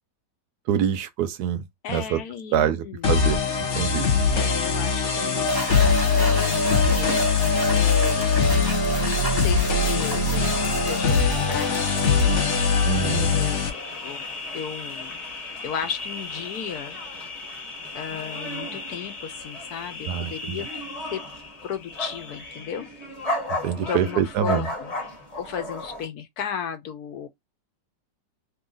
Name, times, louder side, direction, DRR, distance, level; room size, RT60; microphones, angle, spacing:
voice 1, 0.7-1.6 1.9-2.2 2.5-3.4 3.7-4.1 12.8-13.3 20.1-20.6 23.6-24.7, right 9 dB, 75° right, 1.1 m, -25 dB
voice 2, 1.8-3.2 4.3-7.1 7.7-8.3 9.2-12.7 13.1-14.2 14.5-15.2 15.6-17.0 17.9-20.8 21.1-21.2 21.6-22.9 23.8-24.9 25.4-27.3, left 8 dB, 70° left, 1.1 m, -35 dB
sound 1, 3.0-13.7, left 5 dB, 50° left, 1.1 m, -22 dB
sound 2, 5.5-12.2, right 2 dB, 20° right, 0.6 m, -29 dB
sound 3, 10.4-26.1, left 2 dB, 25° left, 1.0 m, -34 dB
3.0 x 2.8 x 3.7 m
omnidirectional pair, 1.9 m